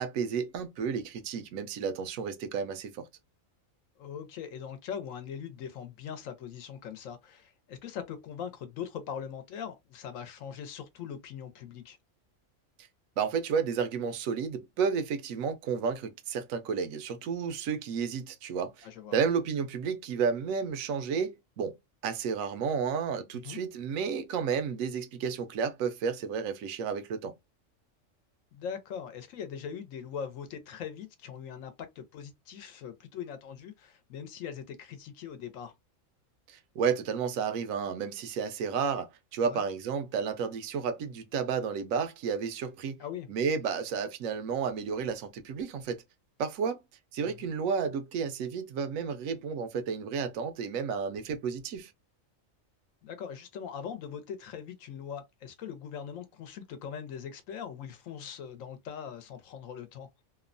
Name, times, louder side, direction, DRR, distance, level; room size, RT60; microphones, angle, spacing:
voice 1, 0.0-3.0 12.8-12.9 13.2-21.8 22.0-27.3 36.5-43.0 43.3-46.0 46.4-46.8 47.1-51.9, right 6 dB, 85° right, 1.0 m, -32 dB
voice 2, 4.0-12.0 18.8-19.2 23.3-23.6 28.5-35.7 39.4-39.6 43.0-43.3 47.2-47.3 53.0-60.1, left 7 dB, 80° left, 1.0 m, -41 dB
2.9 x 2.1 x 2.4 m
omnidirectional pair, 1.4 m